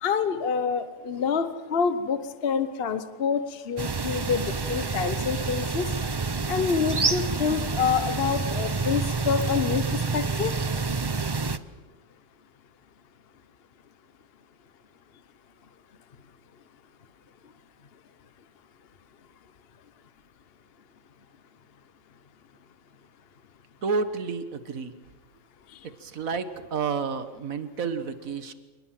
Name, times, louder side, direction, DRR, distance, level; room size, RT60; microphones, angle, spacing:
voice 1, 0.0-5.9 6.5-10.5, left 6 dB, 50° left, 10 dB, 1.1 m, -27 dB
sound 1, 3.8-11.6, right 4 dB, 25° right, 0.5 m, -28 dB
voice 2, 23.8-24.9 26.0-28.5, right 5 dB, 80° right, 10 dB, 1.8 m, -30 dB
27.0 x 20.0 x 7.6 m, 1.3 s
omnidirectional pair, 1.4 m